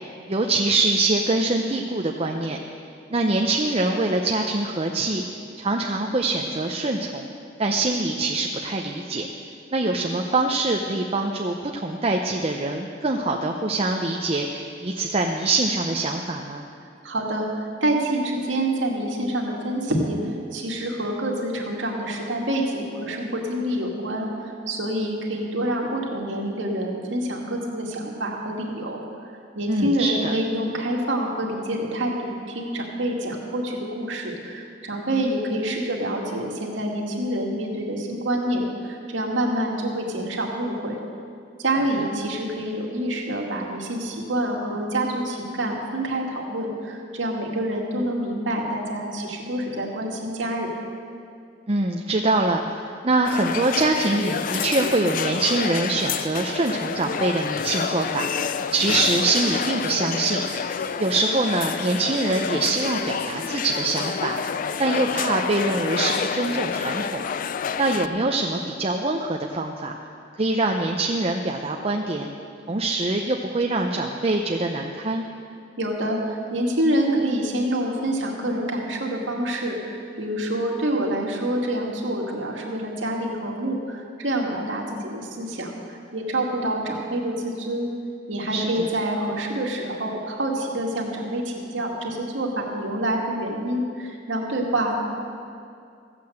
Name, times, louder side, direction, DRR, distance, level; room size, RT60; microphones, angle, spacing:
voice 1, 0.3-2.6 3.1-5.2 5.6-7.3 7.6-9.3 9.7-16.6 29.7-30.3 51.7-60.4 61.0-64.4 64.8-67.2 67.8-69.9 70.4-72.3 72.7-75.2 88.5-88.7, right 2 dB, 30° right, 1 dB, 0.7 m, -24 dB
voice 2, 17.0-17.5 17.8-20.2 20.5-29.0 29.5-41.0 41.6-50.7 75.8-87.9 88.3-95.0, right 1 dB, 80° right, -1 dB, 2.2 m, -27 dB
sound 1, 53.2-68.1, left 6 dB, 45° left, 0.4 m, -28 dB
15.0 x 8.6 x 7.7 m, 2.4 s
head